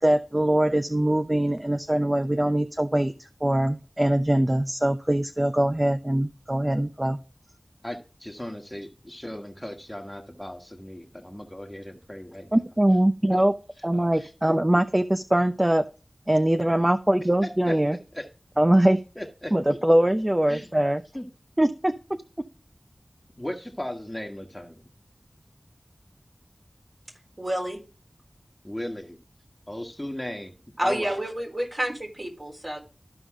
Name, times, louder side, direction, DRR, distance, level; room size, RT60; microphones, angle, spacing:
voice 1, 0.0-3.1 3.4-7.2 12.5-13.5 13.8-15.8 16.3-18.0 18.6-19.0 19.5-21.0 21.6-21.9, right 1 dB, 20° right, 10 dB, 0.6 m, -22 dB
voice 2, 7.8-12.6 13.4-13.5 13.9-14.3 17.7-18.2 19.2-19.5 20.5-20.7 21.1-21.3 23.4-24.8 28.6-29.2 29.7-30.5 30.8-31.1, left 1 dB, 15° left, 4 dB, 1.5 m, -37 dB
voice 3, 27.4-27.8 30.8-32.8, right 1 dB, 40° right, 0 dB, 4.0 m, -29 dB
13.5 x 5.4 x 3.7 m, 0.35 s
wide cardioid pair, 50°, 0 cm